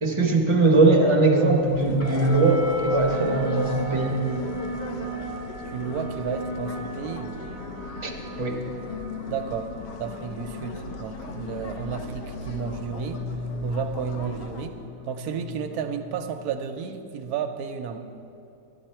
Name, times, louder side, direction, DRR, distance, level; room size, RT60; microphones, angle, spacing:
voice 1, 0.0-4.2 8.0-8.1 8.4-8.6, right 3 dB, 25° right, 0 dB, 0.6 m, -20 dB
sound 1, 1.5-14.7, left 2 dB, 65° left, 1.3 m, -39 dB
sound 2, 2.0-16.8, left 2 dB, 30° left, 1.0 m, -35 dB
voice 2, 5.7-7.3 9.3-9.7 10.0-13.3 13.6-18.0, right 7 dB, 65° right, 6 dB, 1.0 m, -32 dB
11.5 x 11.0 x 4.4 m, 2.7 s
omnidirectional pair, 2.1 m